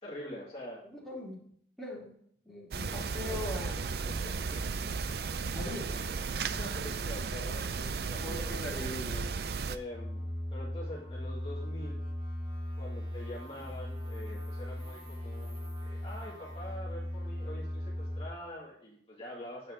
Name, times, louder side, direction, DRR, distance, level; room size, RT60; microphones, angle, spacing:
voice 1, 0.0-0.8 2.8-3.0 3.2-3.4 4.1-4.6 6.5-8.6 9.7-12.0 12.8-19.7, left 1 dB, 30° left, -6 dB, 2.1 m, -45 dB
voice 2, 0.9-1.4 1.8-2.1 2.4-3.8 5.5-6.1 8.1-9.3, left 1 dB, ahead, -6 dB, 3.1 m, -40 dB
sound 1, 2.7-9.8, right 4 dB, 60° right, 0.5 m, -34 dB
sound 2, 9.9-18.3, left 1 dB, 30° right, 2.5 m, -38 dB
9.0 x 8.1 x 3.8 m, 0.64 s
head